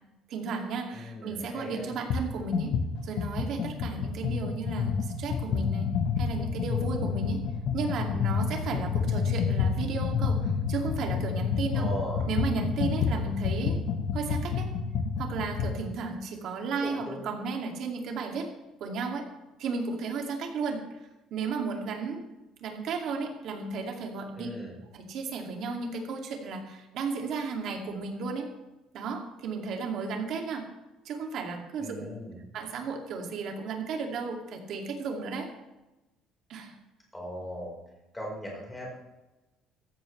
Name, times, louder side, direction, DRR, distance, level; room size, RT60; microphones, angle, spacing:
voice 1, 0.3-2.7 3.0-7.4 7.7-11.9 12.3-13.8 14.1-14.7 15.2-18.5 18.8-19.3 19.6-20.9 21.3-22.2 22.6-24.5 24.9-28.5 28.9-30.7 31.0-32.2 32.5-35.5 36.5-36.8, right 4 dB, 50° right, 2 dB, 2.4 m, -34 dB
voice 2, 0.9-1.9 11.7-12.2 16.8-17.3 24.3-24.8 31.8-32.4 37.1-37.7 38.1-38.9, equal, 5° left, -2 dB, 4.4 m, -38 dB
sound 1, 2.1-2.3 2.5-15.8, left 6 dB, 50° left, 1.3 m, -29 dB
17.0 x 14.5 x 3.3 m, 1.0 s
cardioid pair, 175°, 0 cm